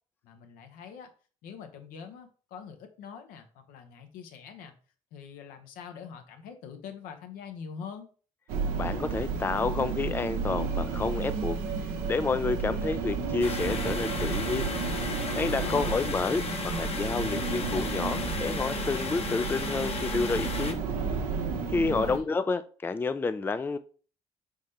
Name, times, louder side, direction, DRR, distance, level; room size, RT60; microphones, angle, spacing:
voice 1, 0.2-1.1 1.4-4.7 5.1-8.1 15.6-16.1 21.6-22.3, left 6 dB, 75° left, 6 dB, 0.8 m, -43 dB
sound 1, 8.5-22.2, right 5 dB, 80° right, 0.7 m, -32 dB
voice 2, 8.8-11.6 12.0-14.7 15.4-20.8 21.7-23.8, left 4 dB, 15° left, 12 dB, 0.3 m, -29 dB
sound 2, 10.4-16.4, right 7 dB, 65° right, 1.1 m, -44 dB
sound 3, 13.4-20.7, left 4 dB, 45° left, 0.9 m, -35 dB
4.1 x 3.6 x 3.2 m, 0.40 s
hypercardioid pair, 60°, 15 cm